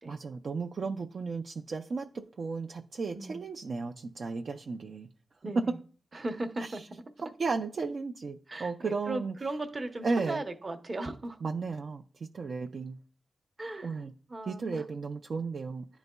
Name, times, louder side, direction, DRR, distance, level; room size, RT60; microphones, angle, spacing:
voice 1, 0.1-5.1 5.6-5.8 6.6-6.8 7.4-9.3 10.0-10.4 11.4-13.0 13.8-14.1 14.5-15.9, right 4 dB, 60° right, 0.4 m, -34 dB
voice 2, 5.4-5.8 6.1-6.8 8.5-11.4 13.6-14.9, right 2 dB, 35° right, 0.7 m, -37 dB
10.5 x 4.0 x 2.2 m
wide cardioid pair, 100°, 0 cm